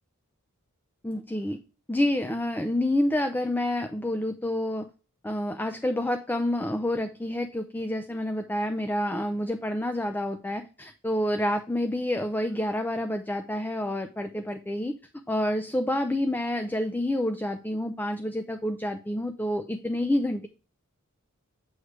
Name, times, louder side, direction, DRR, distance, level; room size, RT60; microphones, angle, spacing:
voice 1, 1.0-1.6 1.9-4.8 5.2-14.9 15.3-20.5, left 1 dB, 10° left, 7 dB, 0.4 m, -28 dB
8.0 x 3.1 x 4.8 m, 0.36 s
head